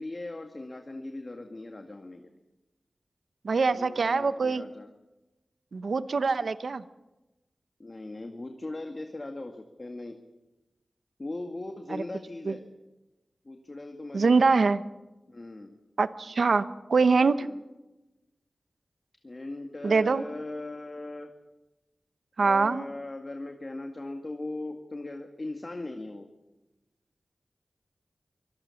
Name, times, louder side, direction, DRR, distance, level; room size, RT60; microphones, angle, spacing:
voice 1, 0.0-2.3 3.7-4.9 7.8-10.2 11.2-12.6 13.5-14.5 15.3-15.8 17.4-17.6 19.2-21.3 22.4-26.3, left 2 dB, 40° left, 4 dB, 2.0 m, -39 dB
voice 2, 3.4-4.6 5.7-6.8 12.5-12.6 14.1-14.8 16.0-17.5 19.8-20.2 22.4-22.8, right 4 dB, 80° right, 13 dB, 0.9 m, -24 dB
24.5 x 19.5 x 7.2 m, 1.0 s
wide cardioid pair, 70°, 0 cm